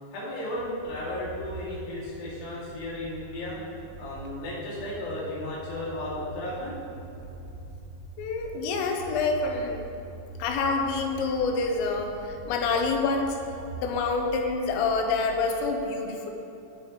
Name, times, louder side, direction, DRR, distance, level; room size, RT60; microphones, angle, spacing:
voice 1, 0.1-3.6 4.0-6.7, left 1 dB, 45° left, -8 dB, 3.4 m, -34 dB
sound 1, 0.6-15.8, right 3 dB, 80° right, 2.9 m, -44 dB
voice 2, 8.2-9.8 10.4-13.4 13.8-16.3, left 4 dB, 80° left, 3 dB, 3.4 m, -27 dB
14.0 x 8.3 x 3.2 m, 2.9 s
omnidirectional pair, 6.0 m